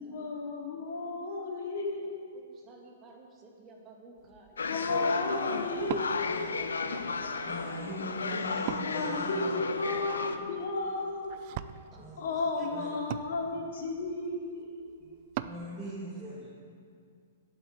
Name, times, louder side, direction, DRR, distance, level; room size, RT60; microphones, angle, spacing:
voice 1, 0.0-2.2 4.6-7.0 8.8-11.5 12.2-14.9, left 3 dB, 60° left, -1 dB, 2.8 m, -34 dB
voice 2, 2.3-4.7 5.3-5.9 6.2-8.2 11.9-12.3 12.6-12.7, right 3 dB, 30° right, 0 dB, 2.4 m, -54 dB
Wood, 4.2-15.7, right 12 dB, 45° right, 0.5 m, -44 dB
sound 1, 4.6-10.4, left 4 dB, 80° left, 0.7 m, -34 dB
voice 3, 5.4-5.7 6.2-6.6 7.1-9.6 11.9-12.9 13.4-13.5 15.0-15.1 15.4-16.5, right 1 dB, 5° right, -10 dB, 2.5 m, -42 dB
8.8 x 8.4 x 8.8 m, 2.3 s
hypercardioid pair, 115°, 0 cm